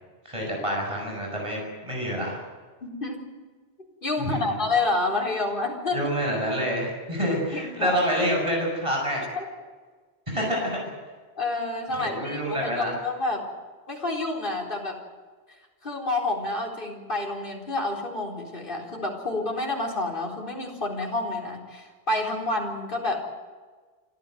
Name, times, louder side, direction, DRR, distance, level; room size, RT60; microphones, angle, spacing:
voice 1, 0.3-2.4 4.2-4.5 5.9-9.3 10.3-10.8 12.0-12.9, equal, 30° right, -1 dB, 7.1 m, -27 dB
voice 2, 2.8-3.2 4.0-6.0 7.5-8.0 9.4-9.5 11.4-13.5 13.9-15.0 15.8-23.2, left 2 dB, 50° left, 1 dB, 4.4 m, -29 dB
27.0 x 14.0 x 9.2 m, 1.4 s
omnidirectional pair, 1.1 m